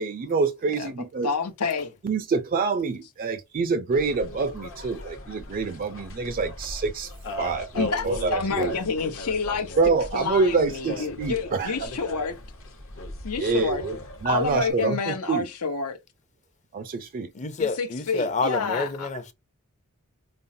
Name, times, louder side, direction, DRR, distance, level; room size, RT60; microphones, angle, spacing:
voice 1, 0.0-1.3 2.0-7.1 7.4-8.7 9.8-11.9 13.4-14.0 14.2-15.5 16.7-17.3, right 4 dB, 40° right, 0.4 m, -26 dB
voice 2, 1.2-1.9 7.8-9.8 10.1-12.4 13.2-13.8 14.3-16.0 17.6-19.1, left 4 dB, 90° left, 0.8 m, -28 dB
sound 1, 3.9-14.7, left 1 dB, 65° left, 0.9 m, -38 dB
voice 3, 17.3-19.3, left 3 dB, 35° left, 0.6 m, -28 dB
5.2 x 2.0 x 2.6 m
head